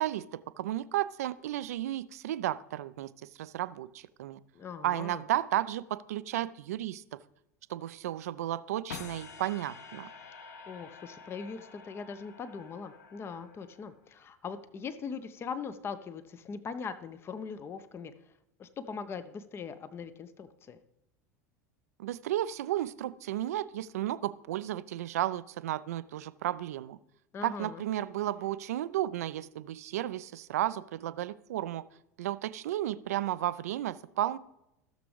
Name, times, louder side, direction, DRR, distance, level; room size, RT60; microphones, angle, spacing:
voice 1, 0.0-3.1 3.4-4.4 4.8-7.2 7.7-10.1 22.0-27.0 27.4-31.8 32.2-34.4, right 13 dB, 65° right, 16 dB, 0.4 m, -33 dB
voice 2, 4.5-5.2 10.7-18.1 18.6-20.8 27.3-27.8, left 5 dB, 25° left, 13 dB, 0.7 m, -41 dB
sound 1, 8.9-14.1, left 5 dB, 70° left, 0.7 m, -48 dB
15.5 x 6.9 x 3.2 m, 0.86 s
figure-of-eight pair, 75°, 9 cm